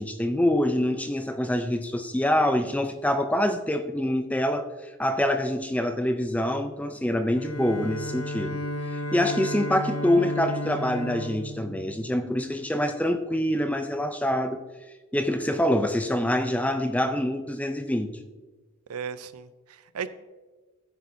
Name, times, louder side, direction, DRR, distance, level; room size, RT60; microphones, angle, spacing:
voice 1, 0.0-4.7 5.0-8.6 8.9-14.6 15.1-18.1, left 1 dB, 5° left, 0.5 m, -25 dB
Bowed string instrument, 7.3-12.5, left 1 dB, 70° left, 0.7 m, -34 dB
voice 2, 18.9-20.1, right 7 dB, 85° right, 0.5 m, -36 dB
14.5 x 8.1 x 2.7 m
head